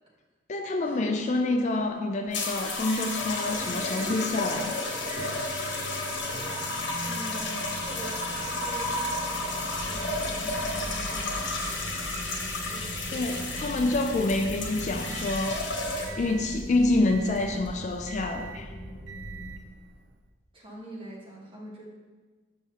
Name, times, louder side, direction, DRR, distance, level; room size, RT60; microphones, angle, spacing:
voice 1, 0.5-4.8 13.1-15.8 16.2-18.7, left 2 dB, 40° left, 5 dB, 0.4 m, -27 dB
sound 1, 2.3-16.3 17.2-17.6, left 2 dB, 80° left, 1.1 m, -32 dB
Microwave oven, 2.3-20.2, right 2 dB, 85° right, 0.6 m, -44 dB
voice 2, 7.0-12.2 12.6-13.5 20.5-21.9, right 1 dB, 30° right, -4 dB, 1.3 m, -44 dB
sound 2, 9.8-19.5, equal, 20° left, 2.0 m, -41 dB
7.2 x 5.9 x 2.8 m, 1.4 s
head